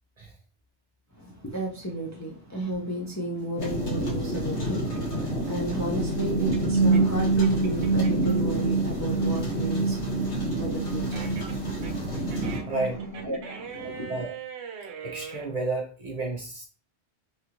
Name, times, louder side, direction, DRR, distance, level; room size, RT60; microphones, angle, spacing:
voice 1, 1.2-14.2, right 2 dB, 25° left, 0.4 m, -34 dB
sound 1, 3.6-12.6, equal, 80° left, 1.6 m, -30 dB
sound 2, 4.9-8.3 8.7-15.5, right 7 dB, 80° right, 0.9 m, -42 dB
sound 3, 6.0-13.6, right 3 dB, 65° left, 0.8 m, -27 dB
voice 2, 12.7-13.0 13.8-14.3 15.0-16.6, right 2 dB, 45° right, 0.6 m, -31 dB
3.4 x 2.5 x 2.9 m
omnidirectional pair, 1.1 m